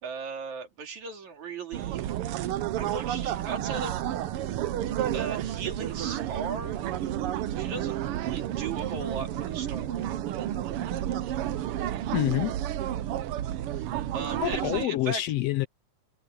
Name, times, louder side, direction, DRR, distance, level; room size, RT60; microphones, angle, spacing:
voice 1, 0.0-2.1 2.7-4.3 4.8-6.8 7.6-10.0 13.7-13.9 14.1-15.2, right 5 dB, 65° right, 4.4 m, -37 dB
sound 1, 1.7-14.9, right 12 dB, 85° right, 1.2 m, -31 dB
voice 2, 12.1-12.6 14.4-15.7, left 15 dB, 75° left, 1.5 m, -27 dB
omnidirectional pair, 3.6 m